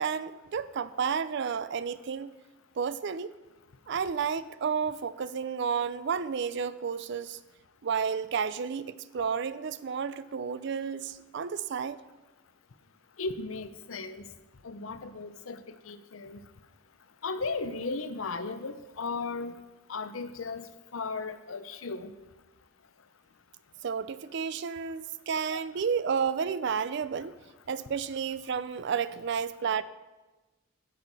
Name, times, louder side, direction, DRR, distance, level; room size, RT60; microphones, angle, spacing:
voice 1, 0.0-2.3 2.8-3.4 3.9-7.4 7.8-12.0 23.8-27.3 27.7-29.8, right 6 dB, 60° right, 15 dB, 0.4 m, -31 dB
voice 2, 13.2-14.3 14.6-16.4 17.2-19.6 19.9-22.1 25.5-25.6, left 4 dB, 90° left, 12 dB, 0.7 m, -36 dB
15.5 x 6.3 x 4.1 m, 1.2 s
head